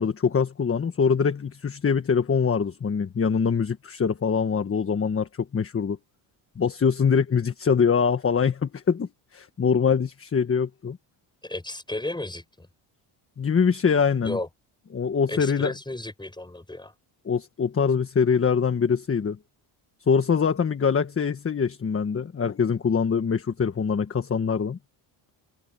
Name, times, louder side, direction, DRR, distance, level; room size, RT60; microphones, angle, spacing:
voice 1, 0.0-6.0 6.6-11.0 13.4-14.4 14.9-15.7 17.2-19.4 20.1-24.8, left 6 dB, 25° left, 1.3 m, -23 dB
voice 2, 11.4-12.7 14.2-14.5 15.3-16.9, left 2 dB, 10° left, 6.6 m, -33 dB
cardioid pair, 110°, 48 cm